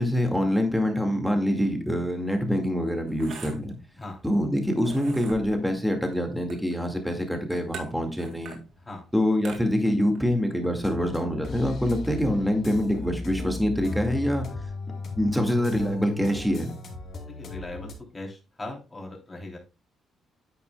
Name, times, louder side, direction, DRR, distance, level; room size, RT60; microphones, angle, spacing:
voice 1, 0.0-3.7 4.2-8.6 9.1-14.5 15.2-16.7, equal, ahead, 3 dB, 2.0 m, -25 dB
sound 1, 2.1-11.9, right 5 dB, 75° right, 2.1 m, -46 dB
sound 2, 10.8-18.0, left 3 dB, 60° left, 2.9 m, -36 dB
voice 2, 17.3-19.6, left 2 dB, 20° left, 1 dB, 3.2 m, -39 dB
9.7 x 8.4 x 2.3 m, 0.30 s
cardioid pair, 90°, 0 cm